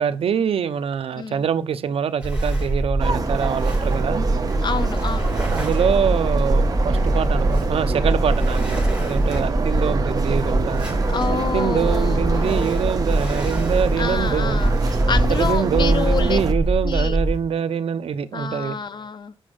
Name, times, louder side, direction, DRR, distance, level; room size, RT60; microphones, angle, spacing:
voice 1, 0.0-4.3 5.3-11.0 11.3-14.6 15.3-18.8, right 7 dB, 80° right, 0.9 m, -24 dB
voice 2, 1.1-1.5 4.6-5.3 11.1-12.7 14.0-14.8 15.1-16.4 16.8-17.2 18.3-19.3, left 5 dB, 50° left, 1.0 m, -28 dB
sound 1, 2.2-17.4, right 1 dB, 10° right, 4.8 m, -22 dB
sound 2, 3.0-16.5, right 4 dB, 40° right, 1.4 m, -28 dB
sound 3, 3.6-16.5, right 1 dB, 5° left, 2.6 m, -43 dB
8.4 x 6.3 x 7.6 m
wide cardioid pair, 115°, 10 cm